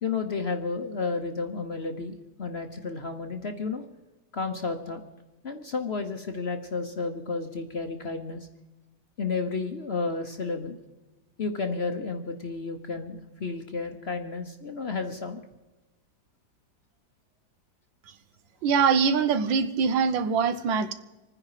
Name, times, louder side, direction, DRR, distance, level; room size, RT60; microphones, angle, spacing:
voice 1, 0.0-3.8 4.3-5.0 5.4-8.5 9.2-10.8 11.4-15.4, left 4 dB, 45° left, 7 dB, 0.9 m, -32 dB
voice 2, 18.6-20.9, right 6 dB, 85° right, 10 dB, 1.7 m, -23 dB
26.0 x 9.8 x 4.9 m, 1.1 s
omnidirectional pair, 2.0 m